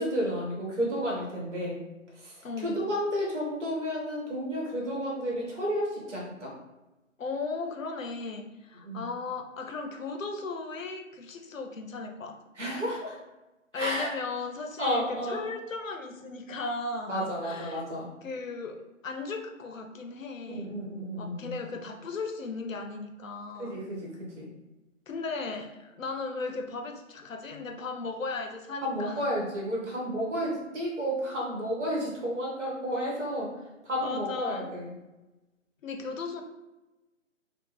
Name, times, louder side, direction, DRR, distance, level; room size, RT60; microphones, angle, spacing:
voice 1, 0.0-1.8 2.2-2.3 2.6-6.5 8.8-9.0 12.6-13.2 13.7-14.1 14.8-15.5 17.1-18.1 20.5-21.6 23.6-24.5 28.8-33.5 33.8-34.9, equal, 60° right, -3 dB, 1.5 m, -31 dB
voice 2, 2.4-2.8 7.2-12.4 13.7-17.8 18.2-20.7 21.1-23.8 25.1-29.3 34.0-34.7 35.8-36.4, left 4 dB, 75° left, 5 dB, 0.6 m, -36 dB
3.3 x 2.3 x 3.2 m, 1.0 s
figure-of-eight pair, 150°, 39 cm